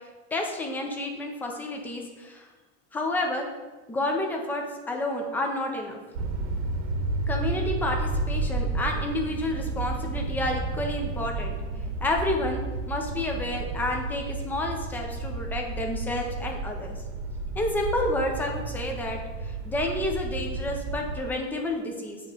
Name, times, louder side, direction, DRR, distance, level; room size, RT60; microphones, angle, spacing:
voice 1, 0.3-2.5 2.9-3.5 3.9-6.0 7.3-11.6 12.0-12.6 12.9-16.9 17.6-22.2, left 1 dB, 5° left, 2 dB, 0.4 m, -30 dB
sound 1, 6.2-21.2, right 3 dB, 55° right, 0.9 m, -31 dB
7.4 x 3.0 x 5.5 m, 1.2 s
supercardioid pair, 170°, 32 cm